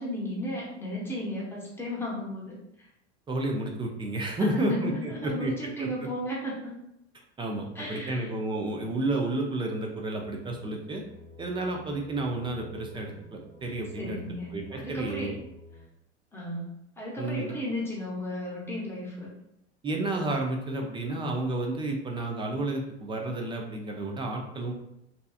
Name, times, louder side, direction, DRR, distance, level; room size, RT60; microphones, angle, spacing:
voice 1, 0.0-2.9 4.4-6.8 7.7-8.3 14.0-15.3 16.3-19.3, left 1 dB, 5° left, -4 dB, 0.9 m, -34 dB
voice 2, 3.3-5.5 5.8-5.9 7.4-11.0 11.4-14.2 14.5-15.3 17.2-17.5 19.8-24.7, right 2 dB, 15° right, 1 dB, 0.4 m, -31 dB
sound 1, 10.2-15.9, left 2 dB, 40° right, 0.8 m, -50 dB
2.7 x 2.3 x 2.4 m, 0.82 s
hypercardioid pair, 85°, 34 cm